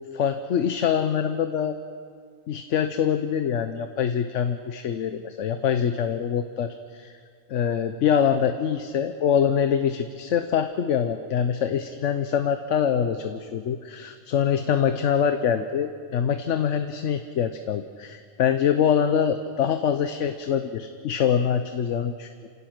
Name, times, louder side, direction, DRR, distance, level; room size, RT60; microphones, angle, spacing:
voice 1, 0.1-1.8 2.5-7.2 7.5-22.5, left 8 dB, 70° left, 8 dB, 1.1 m, -24 dB
29.0 x 17.0 x 6.0 m, 2.1 s
omnidirectional pair, 1.3 m